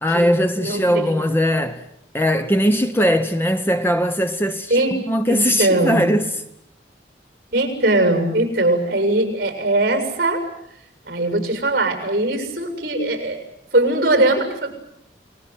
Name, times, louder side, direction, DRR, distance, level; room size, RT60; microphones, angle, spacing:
voice 1, 0.0-1.9 2.1-6.4, equal, 10° left, 1.1 m, -20 dB
voice 2, 0.6-1.1 4.7-5.0 5.3-6.2 7.5-10.4 11.1-13.4 13.7-14.7, right 2 dB, 55° right, 7.2 m, -20 dB
29.5 x 20.0 x 9.4 m
head